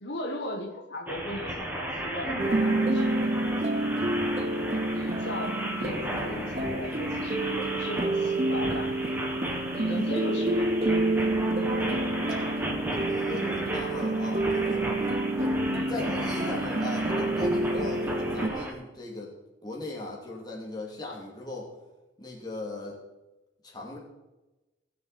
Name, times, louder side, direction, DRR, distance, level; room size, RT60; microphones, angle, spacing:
voice 1, 0.0-4.2 4.9-8.9 9.7-11.0 15.6-15.9, left 1 dB, 70° left, 2 dB, 1.4 m, -38 dB
sound 1, 1.1-18.7, right 1 dB, 10° right, 1.7 m, -35 dB
sound 2, 2.4-18.5, right 2 dB, 35° right, 0.8 m, -28 dB
voice 2, 9.8-10.2 11.8-12.1 12.7-14.9 15.3-15.5 15.9-19.3 19.6-21.7 22.2-23.0 23.6-24.0, left 2 dB, 20° left, -3 dB, 2.8 m, -38 dB
19.5 x 6.8 x 4.2 m, 1.1 s
head